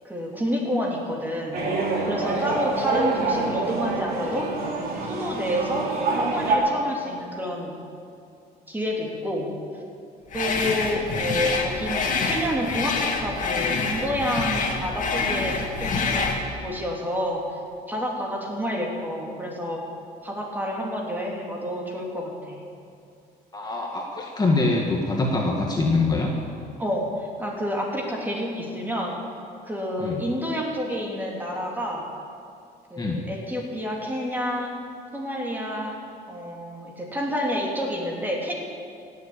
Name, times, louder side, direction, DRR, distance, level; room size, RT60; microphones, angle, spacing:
voice 1, 0.0-1.6 2.1-4.5 5.1-7.8 8.7-9.5 10.3-16.3 16.6-17.4 17.9-19.8 20.2-22.6 26.8-29.2 29.6-32.0 32.9-34.7 35.1-36.0 36.3-38.5, equal, 10° right, -1 dB, 2.9 m, -29 dB
sound 1, 1.5-6.6, right 3 dB, 60° right, 3.0 m, -26 dB
sound 2, 10.3-16.4, left 4 dB, 50° left, 2.3 m, -26 dB
voice 2, 23.5-26.3 30.0-30.2 33.0-33.2, left 3 dB, 25° left, -1 dB, 1.7 m, -24 dB
17.0 x 7.5 x 8.5 m, 2.4 s
cardioid pair, 110°, 17 cm